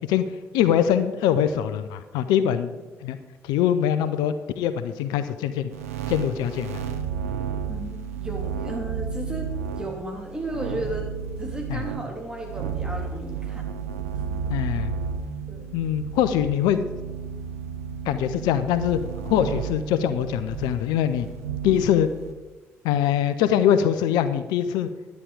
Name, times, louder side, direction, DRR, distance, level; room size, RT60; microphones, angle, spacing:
voice 1, 0.5-2.7 3.0-3.2 3.4-5.7 6.1-6.8 11.7-11.8 14.5-14.9 15.7-16.8 18.1-21.3 21.6-22.1 22.8-24.9, left 10 dB, 65° left, 11 dB, 0.5 m, -23 dB
sound 1, 5.7-22.3, right 6 dB, 80° right, 0.6 m, -32 dB
voice 2, 7.7-11.1 11.4-13.7 14.1-14.4 15.5-15.7, right 1 dB, 10° right, 1 dB, 3.1 m, -34 dB
11.0 x 9.2 x 5.0 m, 1.2 s
figure-of-eight pair, 45°, 8 cm